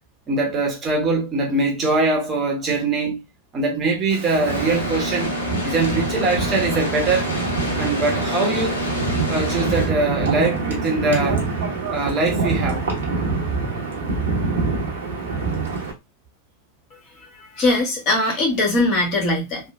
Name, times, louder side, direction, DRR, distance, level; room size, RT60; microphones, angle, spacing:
voice 1, 0.3-3.2 3.5-5.3 5.6-7.3 7.8-8.8 9.3-11.5 11.9-12.8, right 3 dB, 30° right, 0.9 m, -22 dB
Wind, 4.1-15.9, right 4 dB, 65° right, 0.8 m, -25 dB
sound 1, 4.5-9.9, left 2 dB, 70° left, 0.9 m, -28 dB
voice 2, 17.6-19.7, left 2 dB, 40° left, 1.4 m, -20 dB
3.1 x 2.0 x 2.4 m
figure-of-eight pair, 90°, 0 cm